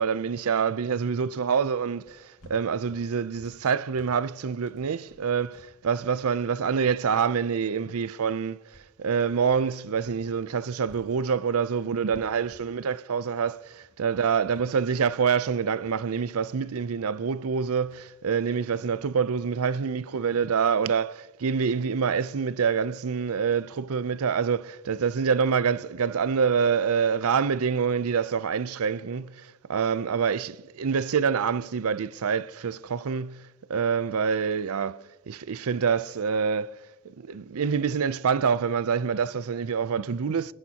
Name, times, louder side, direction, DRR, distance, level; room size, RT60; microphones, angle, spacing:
voice 1, 0.0-36.7 37.0-40.5, right 6 dB, 70° right, 0.5 m, -26 dB
sound 1, 2.0-10.3 10.6-19.3, left 1 dB, 90° left, 1.8 m, -57 dB
25.5 x 10.0 x 2.9 m
head